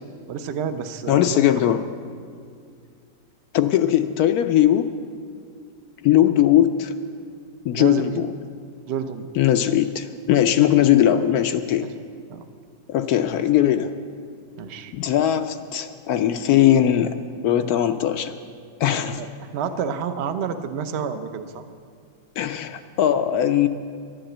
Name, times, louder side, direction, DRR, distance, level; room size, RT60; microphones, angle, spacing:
voice 1, 0.3-1.6 7.7-8.2 8.9-9.3 11.8-11.9 12.3-12.4 14.6-14.9 19.2-19.3 19.5-21.6, right 7 dB, 60° right, 9 dB, 0.7 m, -29 dB
voice 2, 1.1-1.8 3.5-4.9 6.0-6.9 7.6-8.3 9.3-11.9 12.9-13.9 14.9-17.2 17.4-18.3 18.8-19.2 22.4-23.7, left 11 dB, 70° left, 9 dB, 0.9 m, -19 dB
11.5 x 11.0 x 7.8 m, 2.2 s
omnidirectional pair, 1.9 m